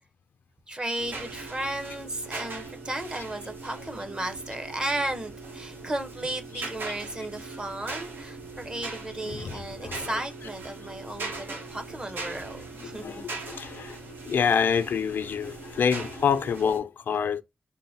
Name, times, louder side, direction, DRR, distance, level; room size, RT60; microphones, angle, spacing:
voice 1, 0.7-13.3, right 1 dB, 25° right, 0.8 m, -34 dB
sound 1, 1.0-16.8, right 3 dB, 85° right, 1.1 m, -40 dB
voice 2, 9.3-10.0 13.0-14.0 14.3-17.4, left 7 dB, 85° left, 0.4 m, -27 dB
3.8 x 2.1 x 4.0 m
wide cardioid pair, 100°, 3 cm